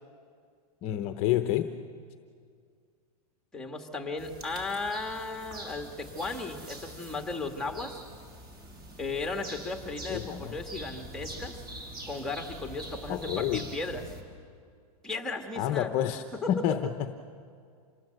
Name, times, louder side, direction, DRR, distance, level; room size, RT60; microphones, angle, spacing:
voice 1, 0.8-1.7 10.1-10.6 13.1-13.6 15.6-17.1, left 11 dB, 30° left, 9 dB, 0.8 m, -29 dB
voice 2, 3.5-8.0 9.0-11.6 12.1-14.0 15.0-15.9 16.4-16.5, left 3 dB, 5° left, 4 dB, 1.8 m, -35 dB
sound 1, 4.2-14.2, right 1 dB, 20° right, 3.9 m, -44 dB
27.5 x 19.5 x 7.9 m, 2.2 s
supercardioid pair, 155°, 20 cm